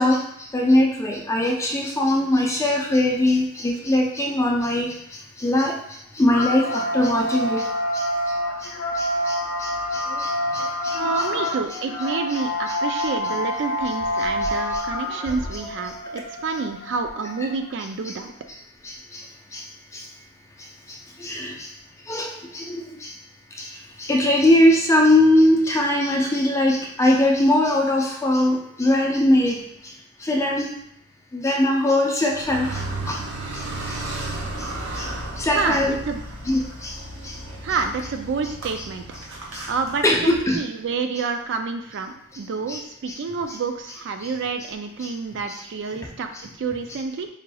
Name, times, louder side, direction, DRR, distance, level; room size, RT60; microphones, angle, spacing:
voice 1, 0.0-5.8 6.1-7.7 7.9-8.1 8.6-11.2 12.7-12.8 14.4-15.2 18.1-18.2 18.8-19.2 19.5-19.7 19.9-20.1 20.9-21.7 22.1-23.1 23.5-29.9 30.2-30.7 31.3-33.2 33.5-34.0 34.6-34.7 34.9-35.9 36.5-37.0 37.2-37.4 39.5-39.6 40.0-40.6 42.7-42.8 43.1-43.2 44.2-44.3 45.0-45.1 45.5-45.6, left 1 dB, 15° left, 0 dB, 0.5 m, -22 dB
sound 1, 6.3-17.7, left 1 dB, 60° left, 0.7 m, -27 dB
voice 2, 10.9-18.3 35.5-36.2 37.6-39.0 39.7-47.3, right 4 dB, 60° right, 6 dB, 0.4 m, -28 dB
Car, 32.3-40.6, right 2 dB, 85° right, 0.8 m, -34 dB
4.9 x 3.2 x 2.3 m, 0.75 s
head